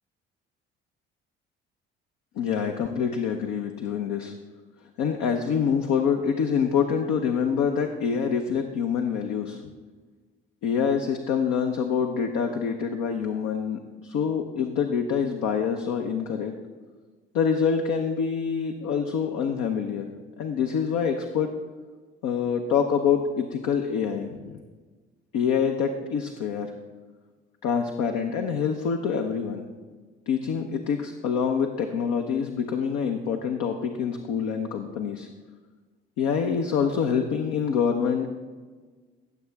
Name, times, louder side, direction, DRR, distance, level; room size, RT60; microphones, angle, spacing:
voice 1, 2.4-4.3 5.0-9.6 10.6-16.5 17.3-20.1 20.4-21.5 22.2-24.6 25.3-26.7 27.6-29.7 30.3-35.3 36.2-38.3, left 6 dB, 65° left, 4 dB, 0.9 m, -26 dB
16.0 x 7.2 x 3.4 m, 1.4 s
hypercardioid pair, 50°, 30 cm